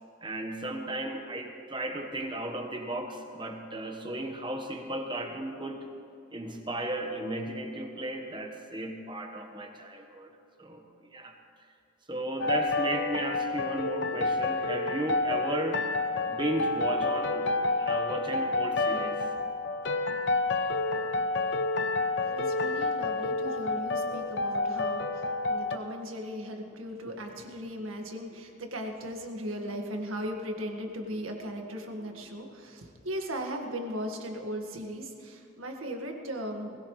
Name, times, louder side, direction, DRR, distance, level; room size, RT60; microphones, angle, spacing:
voice 1, 0.2-5.8 6.3-10.3 10.6-10.8 11.1-11.3 12.1-15.9 16.3-19.2, right 1 dB, 25° right, 4 dB, 1.2 m, -35 dB
sound 1, 12.4-25.8, left 3 dB, 60° left, 0.7 m, -29 dB
voice 2, 22.2-36.8, equal, 90° right, 2 dB, 1.8 m, -37 dB
20.5 x 17.0 x 3.2 m, 2.6 s
head